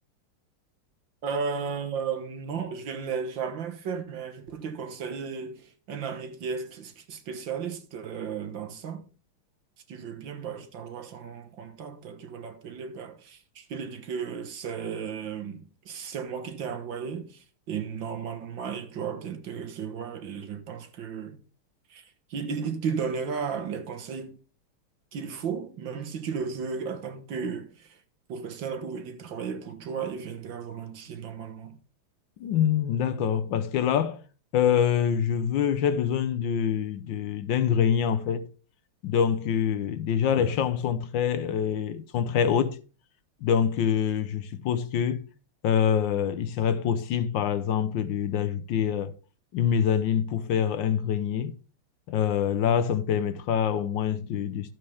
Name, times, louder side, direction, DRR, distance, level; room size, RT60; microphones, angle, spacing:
voice 1, 1.2-9.0 9.9-21.4 21.9-22.0 22.3-24.3 25.1-28.0 28.3-31.8, right 6 dB, 65° right, 1.8 m, -34 dB
voice 2, 32.4-34.2 34.5-38.5 39.0-42.8 43.4-45.3 45.6-49.1 49.5-51.6 52.1-54.7, left 8 dB, 70° left, 1.3 m, -25 dB
12.0 x 7.7 x 3.4 m
omnidirectional pair, 2.3 m